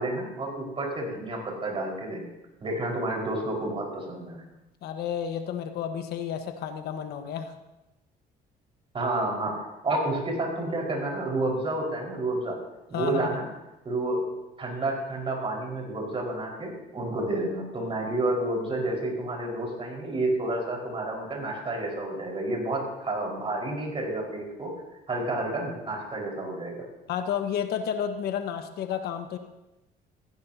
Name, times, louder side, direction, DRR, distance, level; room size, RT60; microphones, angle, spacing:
voice 1, 0.0-2.3 2.6-4.4 8.9-12.6 12.9-13.4 13.8-14.2 14.6-24.7 25.1-26.7, right 2 dB, 35° right, -1 dB, 4.8 m, -30 dB
voice 2, 4.8-7.5 12.9-13.3 27.1-29.4, left 8 dB, 70° left, 6 dB, 1.3 m, -31 dB
16.0 x 16.0 x 2.8 m, 0.96 s
cardioid pair, 110°, 17 cm